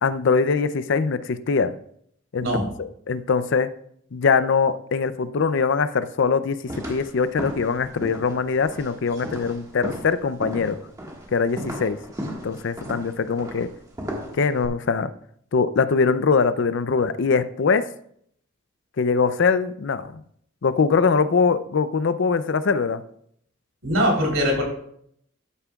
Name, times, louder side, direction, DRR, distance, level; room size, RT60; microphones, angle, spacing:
voice 1, 0.0-1.7 2.3-2.5 2.8-3.7 4.1-6.6 6.9-10.8 11.3-12.0 12.3-13.7 14.3-15.1 15.5-17.9 19.0-20.2 20.6-23.0, left 5 dB, 60° left, 13 dB, 0.5 m, -22 dB
sound 1, 6.7-14.7, equal, 15° right, 1.6 m, -36 dB
voice 2, 23.8-24.6, equal, 70° right, -1 dB, 3.5 m, -21 dB
12.5 x 8.8 x 2.3 m, 0.67 s
head